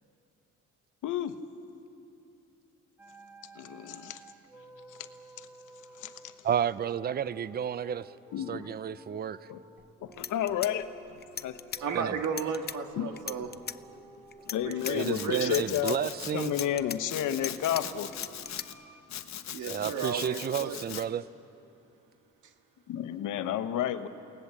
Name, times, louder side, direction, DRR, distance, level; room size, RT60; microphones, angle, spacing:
voice 1, 1.0-1.4 3.6-4.2 4.9-5.0 5.4-5.5 6.0-6.3 8.3-8.7 9.5-9.6 10.0-11.6 13.0-13.2 14.5-16.0 16.3-18.1 22.9-24.1, left 11 dB, 85° left, 10 dB, 1.1 m, -31 dB
sound 1, 3.0-19.0, right 1 dB, 5° right, 2.3 m, -53 dB
voice 2, 6.4-8.1 8.5-9.4 11.9-12.2 14.9-16.5 19.7-21.2, right 8 dB, 30° right, 17 dB, 0.5 m, -31 dB
sound 2, 9.8-9.9 10.1-11.8 12.2-12.8 13.2-13.8 14.3-14.9 15.3-16.0 16.4-17.8 18.1-18.7, left 7 dB, 35° left, 0.7 m, -38 dB
voice 3, 11.8-13.6 14.6-15.7 19.5-20.9, right 6 dB, 75° right, 5 dB, 2.0 m, -34 dB
Domestic sounds home sounds, 14.8-16.7 17.1-18.7 19.1-21.0, left 10 dB, 65° left, 1.1 m, -41 dB
28.0 x 18.5 x 7.5 m, 2.8 s
cardioid pair, 90°, 30 cm